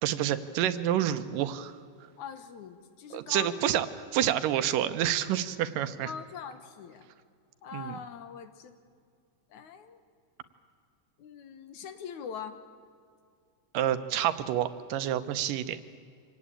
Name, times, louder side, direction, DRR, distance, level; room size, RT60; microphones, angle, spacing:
voice 1, 0.0-1.7 3.1-3.9 4.1-6.1 7.7-8.0 13.7-15.8, right 11 dB, 90° right, 11 dB, 2.6 m, -28 dB
voice 2, 2.2-3.6 6.1-7.1 7.6-8.8 9.5-10.0 11.2-12.6, left 7 dB, 70° left, 9 dB, 2.6 m, -42 dB
25.5 x 18.5 x 8.9 m, 2.2 s
omnidirectional pair, 3.7 m